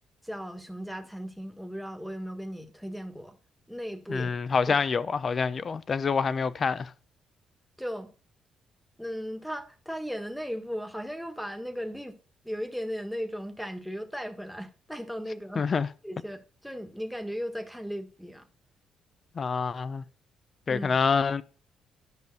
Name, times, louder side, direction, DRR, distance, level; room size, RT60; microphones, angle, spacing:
voice 1, 0.2-3.3 3.7-4.3 4.7-4.8 7.8-8.1 9.0-12.1 12.4-15.7 16.0-18.5 20.7-20.9, equal, ahead, 1.6 m, -36 dB
voice 2, 4.1-6.9 15.6-15.9 19.3-20.0 20.7-21.4, left 5 dB, 40° left, 0.7 m, -26 dB
11.0 x 5.3 x 6.5 m
cardioid pair, 90°, 0 cm